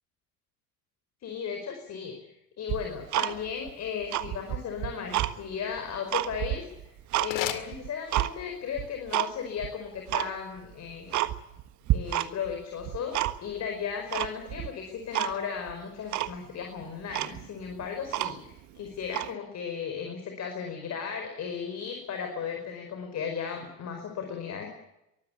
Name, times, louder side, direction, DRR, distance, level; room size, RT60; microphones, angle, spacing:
voice 1, 1.2-2.1 2.6-6.7 7.2-11.2 11.9-24.7, left 7 dB, 40° left, 4 dB, 5.1 m, -35 dB
Tick-tock, 2.7-3.7 4.0-5.3 5.8-7.3 7.7-8.3 8.8-9.3 9.6-9.7 10.1-10.3 10.7-10.8 11.1-11.6 11.9-12.5 12.8-13.6 14.1-14.7 15.1-15.3 15.7-15.8 16.1-16.3 16.8-16.9 17.1-18.6 19.1-19.3, right 15 dB, 45° right, 1.5 m, -29 dB
sound 1, 6.5-8.5, left 13 dB, 60° left, 2.3 m, -37 dB
23.5 x 15.5 x 9.9 m, 0.85 s
figure-of-eight pair, 70°, 41 cm